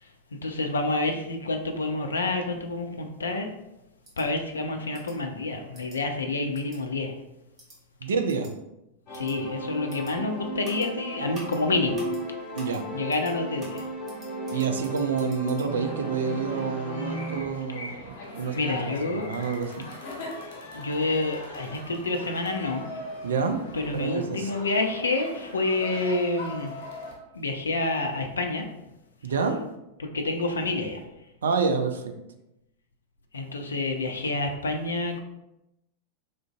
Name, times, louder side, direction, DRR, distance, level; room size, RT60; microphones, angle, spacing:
voice 1, 0.0-3.5 4.2-7.1 9.1-12.0 12.9-13.9 18.6-19.3 20.7-22.9 23.7-26.7 27.3-28.7 30.0-31.0 33.3-35.2, left 2 dB, 70° left, 4 dB, 0.3 m, -28 dB
sound 1, 4.0-4.2 4.9-5.1 5.7-6.0 6.5-6.8 7.6-7.8 8.3-8.5 9.1-9.3 9.9-10.1 10.6-10.9 11.3-11.6 11.9-12.2 12.5-12.8 13.1-13.3 13.6-15.7, right 1 dB, 30° right, 1.1 m, -48 dB
voice 2, 8.0-8.5 12.6-12.8 14.5-19.9 23.2-23.7 23.9-24.5 29.2-29.6 31.4-32.1, right 5 dB, 65° right, 6 dB, 0.3 m, -28 dB
sound 2, 9.1-17.4, right 1 dB, 25° left, 1.2 m, -34 dB
sound 3, 15.7-27.1, left 1 dB, 50° left, 0.8 m, -41 dB
3.7 x 2.4 x 2.2 m, 0.89 s
figure-of-eight pair, 90°, 0 cm